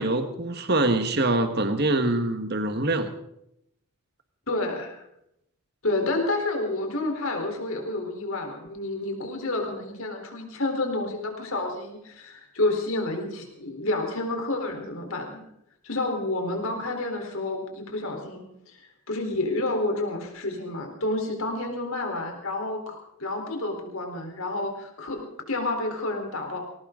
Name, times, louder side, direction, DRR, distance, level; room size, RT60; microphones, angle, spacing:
voice 1, 0.0-3.1, right 2 dB, 45° right, 8 dB, 1.5 m, -24 dB
voice 2, 4.5-5.0 5.8-15.4 15.8-26.6, left 2 dB, 70° left, 3 dB, 4.0 m, -29 dB
20.5 x 18.0 x 3.9 m, 0.79 s
head